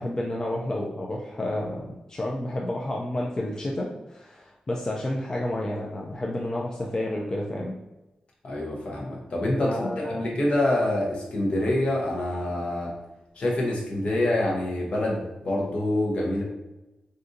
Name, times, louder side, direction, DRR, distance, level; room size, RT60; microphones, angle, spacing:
voice 1, 0.0-7.8 9.6-10.4, left 1 dB, 25° left, -2 dB, 0.3 m, -30 dB
voice 2, 8.4-12.9 13.3-16.4, left 1 dB, 55° left, -2 dB, 0.8 m, -26 dB
3.7 x 2.5 x 2.6 m, 1.0 s
wide cardioid pair, 165°, 2 cm